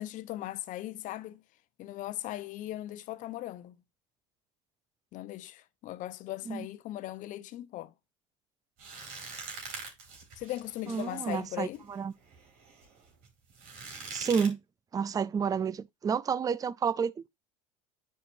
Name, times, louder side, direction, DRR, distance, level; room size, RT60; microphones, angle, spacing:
voice 1, 0.0-1.4 1.8-3.8 5.1-7.9 10.4-11.8, left 15 dB, 50° left, 0.8 m, -39 dB
sound 1, 8.8-14.5, right 4 dB, 60° right, 3.9 m, -44 dB
voice 2, 10.9-12.1 14.1-14.6 14.9-17.3, right 6 dB, 20° right, 0.5 m, -30 dB
10.0 x 4.8 x 2.6 m
hypercardioid pair, 80°, 16 cm